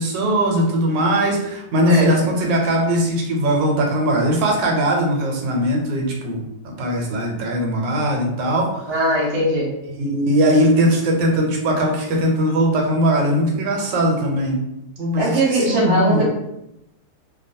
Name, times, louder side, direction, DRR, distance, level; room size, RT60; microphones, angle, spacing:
voice 1, 0.0-9.0 9.9-14.6 15.0-16.2, equal, 90° right, 0 dB, 1.3 m, -20 dB
voice 2, 1.9-2.3 8.9-9.7 15.2-16.2, right 1 dB, 45° right, -6 dB, 0.3 m, -20 dB
2.8 x 2.2 x 2.6 m, 0.86 s
omnidirectional pair, 1.9 m